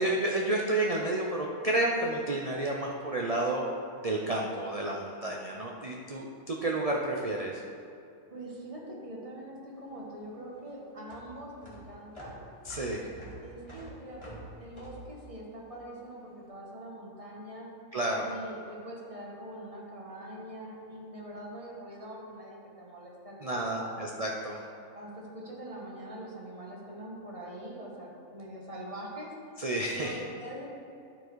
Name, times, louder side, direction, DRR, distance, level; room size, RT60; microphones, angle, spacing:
voice 1, 0.0-3.7 4.0-7.6 12.7-13.1 17.9-18.3 23.4-24.6 29.6-30.2, right 2 dB, 45° right, -1 dB, 0.4 m, -30 dB
voice 2, 8.3-12.4 13.4-17.7 18.2-23.9 24.9-29.3 29.9-30.7, right 1 dB, 25° right, -3 dB, 1.4 m, -43 dB
sound 1, 9.7-16.3, right 1 dB, 20° left, 1.9 m, -48 dB
12.0 x 4.5 x 4.7 m, 2.5 s
omnidirectional pair, 1.5 m